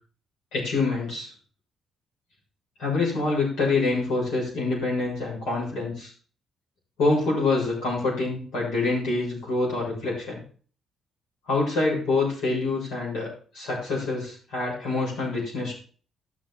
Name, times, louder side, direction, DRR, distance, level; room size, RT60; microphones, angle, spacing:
voice 1, 0.5-1.3 2.8-6.1 7.0-10.4 11.5-13.3 13.5-15.7, left 3 dB, 85° left, -5 dB, 7.3 m, -26 dB
16.5 x 6.5 x 4.4 m, 0.42 s
cardioid pair, 75°, 0 cm